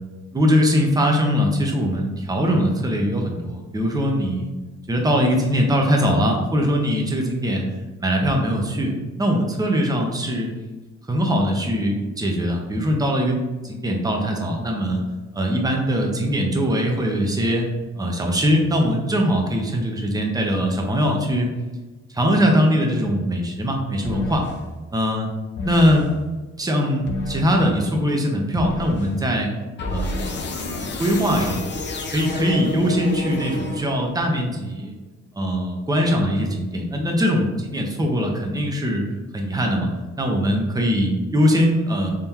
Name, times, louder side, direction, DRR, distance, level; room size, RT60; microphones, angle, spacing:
voice 1, 0.3-4.5 4.9-7.6 8.0-8.9 9.2-10.5 11.1-15.0 15.3-17.7 18.0-21.5 22.1-24.4 24.9-25.3 25.6-26.1 26.6-29.5 29.8-30.4 31.0-31.6 32.1-34.9 35.3-39.0 39.3-39.9 40.1-42.1, equal, 10° right, 1 dB, 0.8 m, -21 dB
sound 1, 24.0-24.6 25.6-26.1 27.1-27.6 28.6-29.1 29.8-34.2, left 2 dB, 40° left, 0.6 m, -29 dB
3.7 x 3.3 x 2.9 m, 1.2 s
cardioid pair, 90°, 30 cm